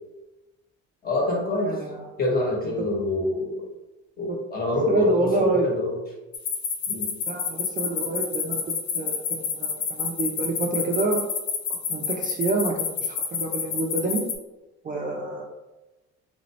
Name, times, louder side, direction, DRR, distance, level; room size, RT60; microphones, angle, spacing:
voice 1, 1.0-1.7 2.2-3.6 4.2-6.0 6.9-7.1, left 2 dB, 30° left, -3 dB, 1.2 m, -26 dB
voice 2, 1.6-2.1 2.8-2.9 4.9-5.7 7.3-11.2 11.9-12.7 13.0-14.2 14.8-15.4, right 3 dB, 30° right, 0 dB, 0.4 m, -27 dB
sound 1, 6.3-14.3, left 7 dB, 75° left, 0.6 m, -28 dB
3.3 x 2.7 x 3.0 m, 1.1 s
cardioid pair, 120°, 30 cm